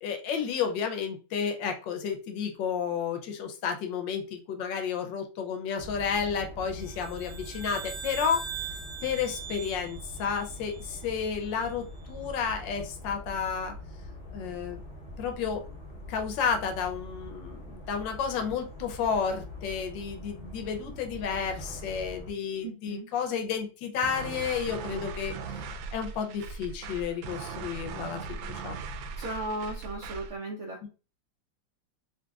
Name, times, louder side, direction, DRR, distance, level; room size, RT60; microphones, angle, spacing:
voice 1, 0.0-8.5 9.0-13.7 14.3-14.8 15.2-15.6 16.1-25.6 25.9-28.8 30.8-30.9, left 6 dB, 75° left, 5 dB, 1.3 m, -31 dB
sound 1, 5.8-22.3, left 1 dB, 50° left, 0.7 m, -44 dB
sound 2, 6.8-11.3, right 7 dB, 30° right, 1.3 m, -41 dB
voice 2, 22.6-23.1 29.2-30.9, right 2 dB, 65° right, -1 dB, 0.7 m, -36 dB
sound 3, 24.0-30.4, right 5 dB, 85° right, 1.4 m, -39 dB
3.9 x 2.9 x 2.3 m, 0.33 s
omnidirectional pair, 2.1 m